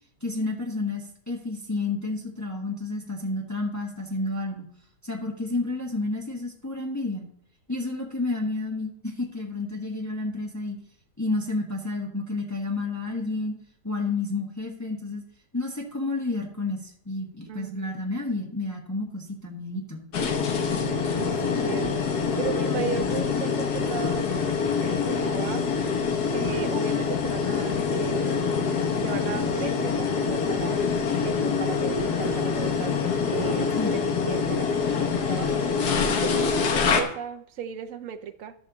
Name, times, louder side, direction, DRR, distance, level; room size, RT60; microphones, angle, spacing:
voice 1, 0.2-4.7 5.0-7.3 7.7-10.8 11.2-13.5 13.8-15.2 15.5-20.1 21.0-21.6 33.8-33.9, left 2 dB, 10° left, -1 dB, 1.3 m, -30 dB
voice 2, 17.5-17.9 20.7-22.0 22.4-25.8 26.3-28.7 29.0-30.9 31.2-38.5, right 8 dB, 60° right, 8 dB, 1.0 m, -35 dB
sound 1, 20.1-37.0, left 5 dB, 70° left, 1.6 m, -25 dB
12.0 x 6.4 x 4.0 m, 0.65 s
omnidirectional pair, 1.8 m